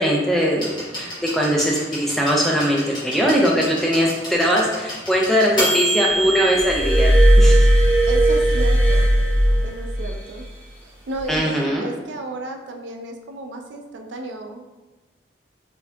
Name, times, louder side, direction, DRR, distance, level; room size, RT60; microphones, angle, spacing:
voice 1, 0.0-7.7 11.3-11.9, equal, ahead, -3 dB, 0.4 m, -20 dB
sound 1, 0.6-8.4 9.5-9.6, equal, 25° left, 0.9 m, -29 dB
Glass, 6.6-10.2 11.2-11.4, right 1 dB, 35° right, 0.9 m, -16 dB
voice 2, 8.1-9.1 9.6-10.5 10.8-14.7, right 2 dB, 85° right, 4 dB, 0.4 m, -33 dB
4.3 x 2.7 x 2.3 m, 1.1 s
head